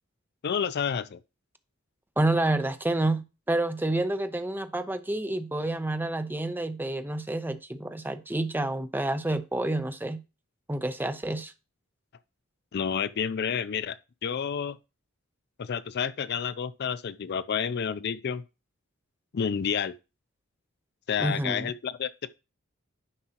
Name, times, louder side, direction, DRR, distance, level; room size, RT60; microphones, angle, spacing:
voice 1, 0.4-1.2 12.7-14.0 14.2-14.8 15.6-18.4 19.3-19.9 21.1-22.3, left 7 dB, 55° left, 0.4 m, -30 dB
voice 2, 2.2-10.2 10.7-11.5 21.2-21.7, right 2 dB, 10° right, 0.6 m, -29 dB
9.9 x 5.5 x 2.9 m
head